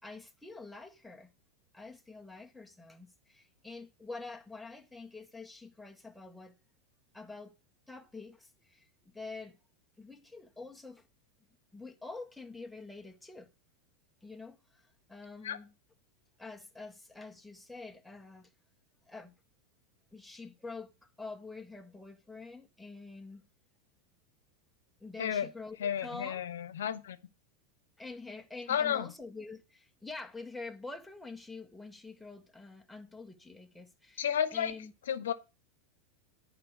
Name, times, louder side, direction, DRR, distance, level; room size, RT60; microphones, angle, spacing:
voice 1, 0.0-1.3 1.7-6.5 7.1-7.5 7.9-9.6 10.0-11.1 11.7-13.5 14.2-15.7 16.4-18.5 19.1-19.3 20.1-23.4 25.0-26.4 28.0-34.9, left 3 dB, 5° left, 1.8 m, -46 dB
voice 2, 25.8-27.2 28.7-29.1 34.2-34.7 35.1-35.3, left 9 dB, 75° left, 1.2 m, -32 dB
10.5 x 5.1 x 7.9 m
hypercardioid pair, 90°, 0 cm